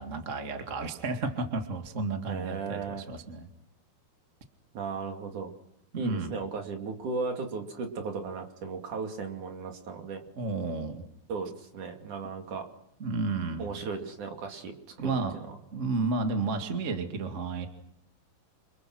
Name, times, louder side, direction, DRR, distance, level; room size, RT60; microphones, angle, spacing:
voice 1, 0.0-3.5 6.0-6.3 10.3-11.0 13.0-13.7 15.0-15.4 15.7-17.7, right 3 dB, 35° right, 5 dB, 1.3 m, -32 dB
voice 2, 2.3-3.1 4.7-5.5 6.0-10.2 11.3-12.7 13.6-15.2 15.5-15.6, right 4 dB, 50° right, 4 dB, 3.8 m, -36 dB
29.0 x 27.5 x 6.3 m, 0.75 s
omnidirectional pair, 4.9 m